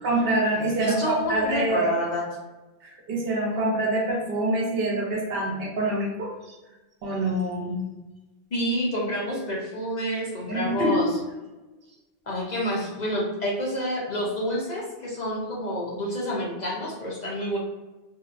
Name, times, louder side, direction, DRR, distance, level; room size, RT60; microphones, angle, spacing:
voice 1, 0.0-1.9 2.8-6.5 7.0-7.8 10.5-11.0, right 1 dB, 65° right, -1 dB, 0.8 m, -26 dB
voice 2, 0.8-2.2 8.5-11.1 12.3-17.6, equal, 55° left, -4 dB, 0.5 m, -28 dB
2.7 x 2.1 x 2.4 m, 1.1 s
omnidirectional pair, 1.1 m